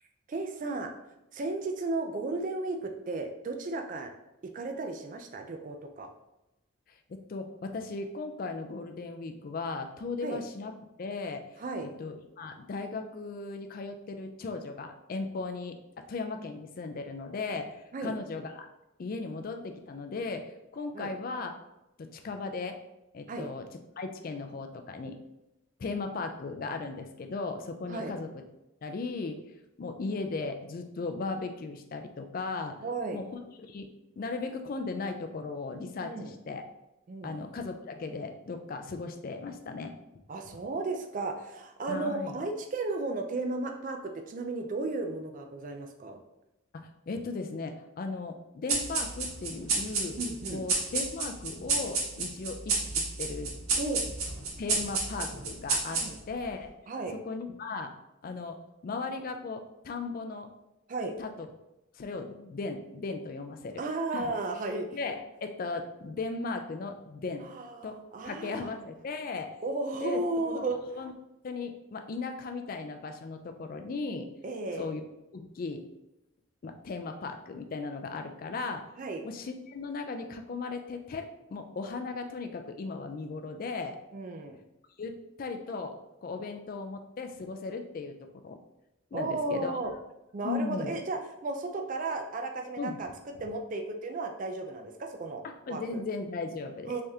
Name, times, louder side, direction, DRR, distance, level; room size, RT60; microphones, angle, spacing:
voice 1, 0.3-0.9 1.3-4.1 4.5-6.1 10.2-10.4 11.6-11.9 17.9-18.2 20.9-21.1 23.3-23.5 27.9-28.1 32.8-33.2 36.0-36.3 37.1-37.4 40.3-46.2 50.2-50.6 53.8-54.0 55.9-56.2 56.9-57.2 60.9-61.2 63.8-65.0 67.4-68.7 69.6-70.8 74.4-74.9 79.0-79.2 84.1-84.6 89.1-89.9 90.3-93.1 93.4-95.4 95.7-96.0 96.9-97.0, right 2 dB, 35° right, 5 dB, 0.3 m, -34 dB
voice 2, 7.1-10.7 11.0-11.5 12.0-18.7 19.0-21.5 22.0-22.8 23.1-23.7 24.0-25.2 25.8-28.4 28.8-29.5 29.8-32.8 33.1-33.2 33.7-33.9 34.2-36.6 37.2-39.9 41.9-42.4 46.7-50.2 50.5-53.5 54.6-56.7 57.2-57.9 58.2-60.5 61.2-61.5 61.9-63.8 64.1-64.3 64.9-67.5 67.8-68.0 68.2-69.5 70.0-70.7 71.0-71.1 71.4-74.3 74.8-75.0 75.3-75.9 76.6-78.8 79.2-84.0 85.0-88.6 89.1-89.9 90.4-90.9 92.8-93.0 95.4-96.9, left 3 dB, 40° left, 6 dB, 0.3 m, -37 dB
sound 1, 48.7-56.4, right 4 dB, 80° right, 0.8 m, -31 dB
3.4 x 3.3 x 2.7 m, 0.93 s
head